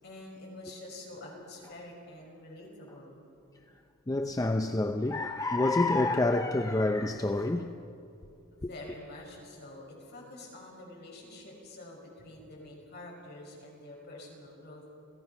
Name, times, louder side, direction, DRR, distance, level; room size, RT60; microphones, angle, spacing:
voice 1, 0.0-3.2 8.5-14.8, left 1 dB, 50° left, 5.7 m, -47 dB
voice 2, 4.1-7.8 8.6-8.7, left 2 dB, 15° left, 0.5 m, -28 dB
29.5 x 16.5 x 5.9 m
head